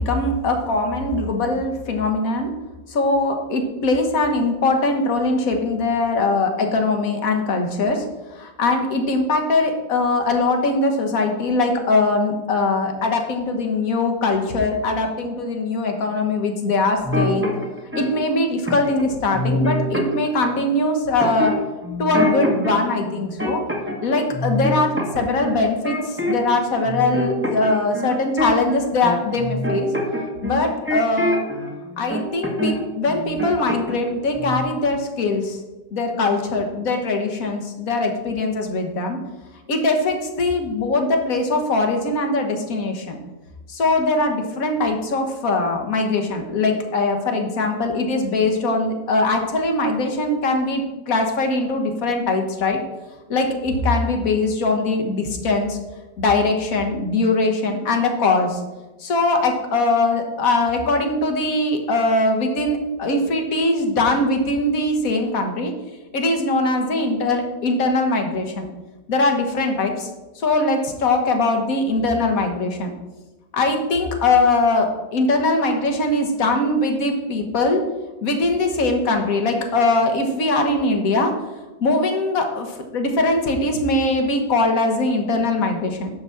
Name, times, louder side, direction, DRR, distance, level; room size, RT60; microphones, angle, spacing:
voice 1, 0.0-2.5 2.9-8.0 8.4-17.5 17.9-21.5 22.0-23.6 24.0-29.9 30.4-31.4 32.0-35.6 35.9-39.2 39.7-43.2 43.7-52.8 53.3-55.8 56.2-58.6 59.0-65.7 66.1-68.7 69.1-70.1 70.4-72.9 73.5-77.8 78.2-81.3 81.8-86.1, left 2 dB, 55° left, 4 dB, 1.6 m, -21 dB
sound 1, 17.0-18.1 18.7-19.0 19.3-20.6 21.2-22.7 23.1-24.1 24.3-26.6 26.8-31.7 32.1-32.8 33.1-34.1 34.3-34.6, left 1 dB, 10° right, 1.3 m, -24 dB
11.0 x 4.0 x 6.9 m, 1.1 s
omnidirectional pair, 1.8 m